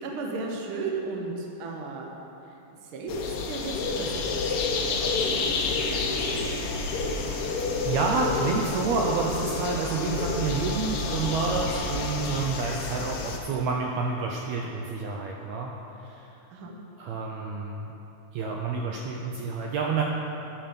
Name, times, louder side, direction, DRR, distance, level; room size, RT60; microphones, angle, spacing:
voice 1, 0.0-2.1 2.5-6.6 16.5-16.7, right 3 dB, 60° right, 0 dB, 1.4 m, -36 dB
sound 1, 3.1-13.4, left 4 dB, 90° left, 1.2 m, -30 dB
sound 2, 3.5-12.3, left 1 dB, 50° left, 2.6 m, -36 dB
voice 2, 7.8-15.7 16.0-16.3 17.0-17.9 18.3-20.0, right 4 dB, 80° right, 0 dB, 1.7 m, -29 dB
12.0 x 5.8 x 5.1 m, 2.9 s
omnidirectional pair, 3.6 m